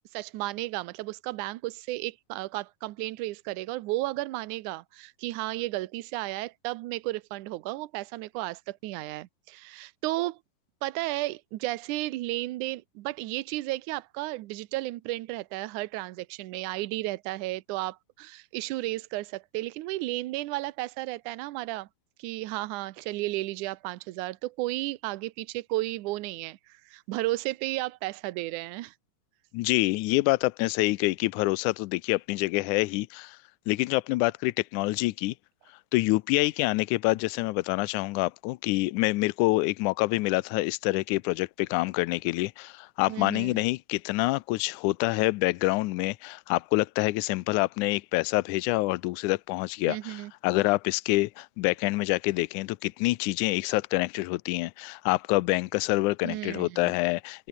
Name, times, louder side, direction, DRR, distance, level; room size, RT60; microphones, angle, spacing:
voice 1, 0.1-10.4 10.8-21.9 22.2-28.9 43.1-43.6 49.9-50.3 56.2-57.0, right 18 dB, 70° right, 2.0 m, -33 dB
voice 2, 29.5-33.4 33.7-35.3 35.9-57.5, left 21 dB, 85° left, 1.8 m, -26 dB
omnidirectional pair, 4.1 m